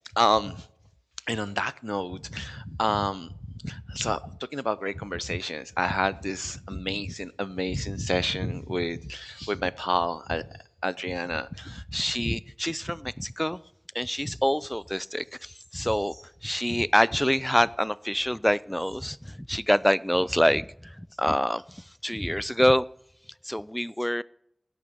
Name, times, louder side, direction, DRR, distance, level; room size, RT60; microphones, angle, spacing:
voice 1, 0.2-0.7 1.3-3.3 3.6-13.6 13.9-22.8 23.4-24.2, equal, 10° left, 0.3 m, -27 dB
16.5 x 6.7 x 3.5 m
wide cardioid pair, 45°, 0 cm